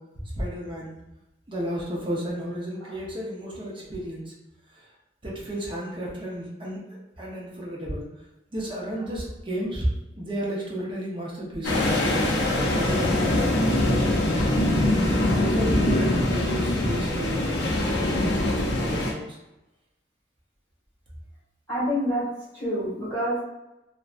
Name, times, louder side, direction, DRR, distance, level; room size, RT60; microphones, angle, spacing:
voice 1, 0.4-0.9 1.5-4.3 5.2-6.9 7.2-8.1 8.5-9.9 10.2-11.9 12.6-14.6 15.3-19.2, equal, 30° right, -4 dB, 0.6 m, -32 dB
sound 1, 11.6-19.1, left 1 dB, 65° left, 0.5 m, -23 dB
voice 2, 18.6-19.1 21.7-22.2 22.5-23.4, equal, 10° left, -13 dB, 1.2 m, -28 dB
2.5 x 2.1 x 2.4 m, 0.96 s
head